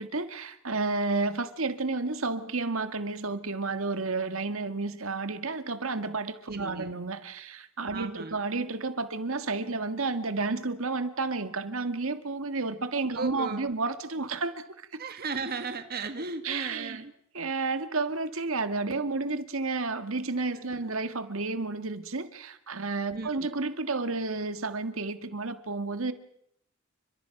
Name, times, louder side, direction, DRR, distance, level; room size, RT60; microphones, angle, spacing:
voice 1, 0.0-14.6 16.4-17.0 17.3-26.1, right 3 dB, 70° right, 10 dB, 1.8 m, -31 dB
voice 2, 6.5-6.9 7.9-8.4 13.1-13.7 15.0-17.1 20.8-20.9 23.1-23.5, right 4 dB, 45° right, 8 dB, 1.4 m, -36 dB
29.5 x 25.5 x 5.9 m, 0.72 s
head